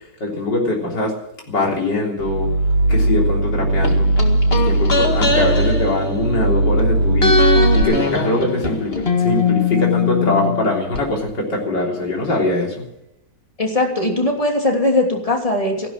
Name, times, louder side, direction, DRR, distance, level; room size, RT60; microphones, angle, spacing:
voice 1, 0.2-1.1 1.5-2.5 2.9-4.1 4.5-7.4 7.7-12.8, left 2 dB, 75° left, -2 dB, 4.2 m, -22 dB
sound 1, 2.2-7.8, right 2 dB, 60° right, 1.6 m, -18 dB
sound 2, 3.8-6.8 7.2-11.0 11.3-11.4, left 4 dB, 35° left, 2.1 m, -21 dB
voice 2, 13.6-15.9, left 2 dB, 20° left, 1 dB, 3.0 m, -19 dB
15.5 x 12.0 x 7.6 m, 0.84 s
omnidirectional pair, 1.9 m